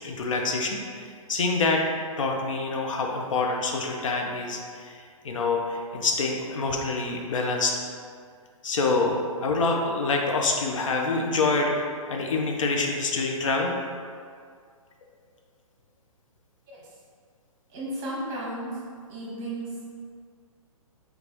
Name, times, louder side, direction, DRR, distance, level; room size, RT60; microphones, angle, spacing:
voice 1, 0.0-1.8 2.2-7.7 8.6-13.8, left 3 dB, 60° left, 1 dB, 0.5 m, -26 dB
voice 2, 17.7-18.8 19.1-19.7, right 1 dB, 25° right, -6 dB, 1.0 m, -34 dB
3.7 x 2.3 x 3.1 m, 2.1 s
figure-of-eight pair, 125°, 18 cm